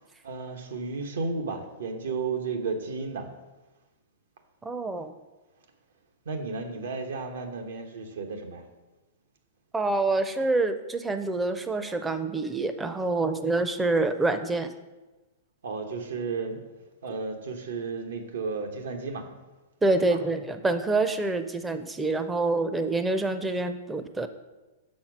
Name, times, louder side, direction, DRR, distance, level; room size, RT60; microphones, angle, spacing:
voice 1, 0.2-3.3 6.2-8.6 15.6-16.6 17.0-19.3 20.1-20.2, right 4 dB, 85° right, 4 dB, 1.0 m, -33 dB
voice 2, 4.6-5.1 9.7-14.7 19.8-24.3, right 2 dB, 10° right, 9 dB, 0.4 m, -26 dB
6.2 x 4.3 x 6.0 m, 1.1 s
hypercardioid pair, 150°, 0 cm